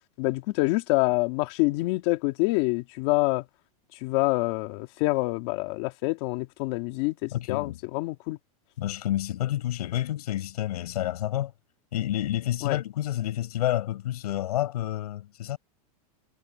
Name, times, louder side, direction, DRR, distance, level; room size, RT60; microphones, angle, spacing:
voice 1, 0.2-3.4 4.0-8.4 12.6-12.8, left 23 dB, 45° left, 2.7 m, -26 dB
voice 2, 7.3-7.8 8.8-11.5 11.9-15.6, left 13 dB, 85° left, 7.2 m, -29 dB
supercardioid pair, 165°, 19 cm